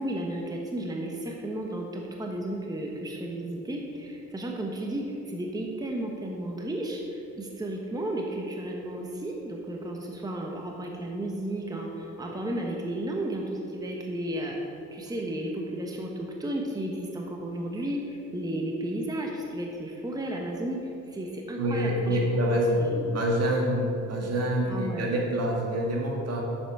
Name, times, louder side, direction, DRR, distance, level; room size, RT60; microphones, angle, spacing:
voice 1, 0.0-22.2 22.5-23.1 23.5-23.6 24.2-24.3 24.7-25.2, right 1 dB, 15° right, 0 dB, 1.1 m, -33 dB
voice 2, 21.6-22.8 23.1-26.4, equal, 55° right, -1 dB, 2.1 m, -26 dB
9.7 x 7.2 x 4.8 m, 2.9 s
cardioid pair, 90°, 30 cm